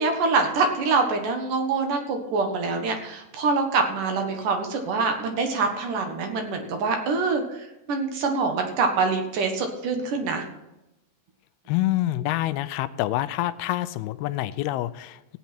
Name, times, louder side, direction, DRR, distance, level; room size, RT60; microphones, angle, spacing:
voice 1, 0.0-10.4, right 4 dB, 65° right, 4 dB, 2.7 m, -25 dB
voice 2, 11.7-15.4, left 15 dB, 85° left, 14 dB, 2.5 m, -27 dB
16.0 x 9.4 x 4.3 m, 0.93 s
omnidirectional pair, 4.5 m